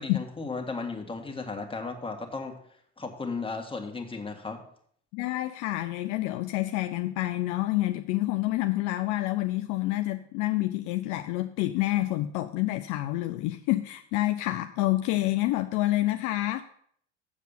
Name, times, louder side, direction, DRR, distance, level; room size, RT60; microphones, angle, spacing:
voice 1, 0.0-2.6 3.0-4.6, left 4 dB, 15° left, 3 dB, 1.6 m, -35 dB
voice 2, 5.1-16.6, left 17 dB, 55° left, 8 dB, 0.6 m, -28 dB
7.3 x 7.2 x 5.4 m, 0.62 s
hypercardioid pair, 60°, 36 cm